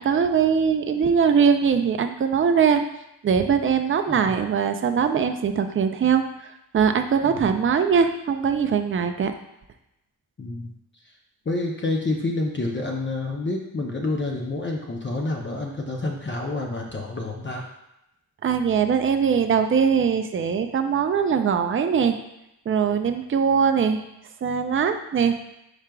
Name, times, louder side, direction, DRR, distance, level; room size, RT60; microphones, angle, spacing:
voice 1, 0.0-2.8 3.2-6.2 6.7-9.3 18.4-22.2 22.7-24.0 24.4-25.4, right 6 dB, 35° right, 7 dB, 0.4 m, -21 dB
voice 2, 10.4-10.7 11.5-17.6, left 2 dB, 30° left, -1 dB, 0.6 m, -28 dB
4.9 x 4.5 x 2.3 m, 0.87 s
cardioid pair, 70°, 38 cm